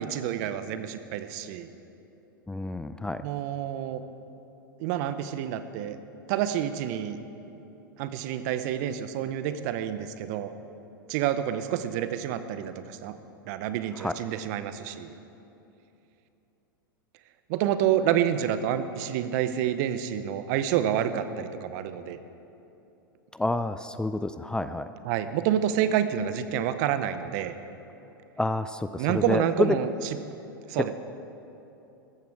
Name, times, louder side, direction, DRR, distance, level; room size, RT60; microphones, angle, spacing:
voice 1, 0.0-1.7 3.2-4.0 4.8-6.0 6.3-7.2 8.0-10.5 11.1-13.1 13.5-15.1 17.5-22.2 25.0-27.5 29.0-29.9 30.7-30.9, right 10 dB, 55° right, 11 dB, 0.8 m, -28 dB
voice 2, 2.5-3.2 14.0-14.1 23.3-24.9 28.4-29.8, left 2 dB, 5° left, 11 dB, 0.4 m, -28 dB
14.5 x 13.5 x 4.8 m, 2.9 s
hypercardioid pair, 95°, 11 cm